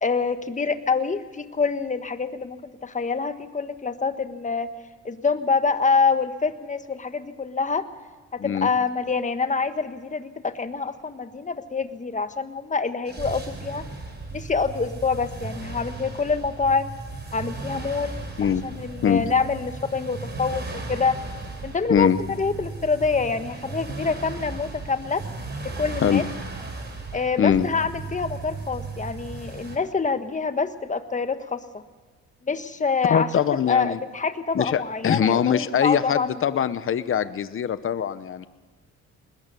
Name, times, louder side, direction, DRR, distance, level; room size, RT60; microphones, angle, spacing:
voice 1, 0.0-4.7 5.0-7.9 8.3-13.8 14.3-16.9 17.3-21.2 21.6-25.2 25.6-26.2 27.1-31.8 32.4-33.3 33.7-36.7, left 4 dB, 25° left, 10 dB, 1.5 m, -26 dB
sound 1, 13.0-29.8, right 3 dB, 35° right, 4.9 m, -36 dB
voice 2, 33.1-34.0 34.5-38.5, left 8 dB, 45° left, 14 dB, 0.9 m, -22 dB
20.5 x 19.0 x 6.9 m, 1.4 s
cardioid pair, 90°, 30 cm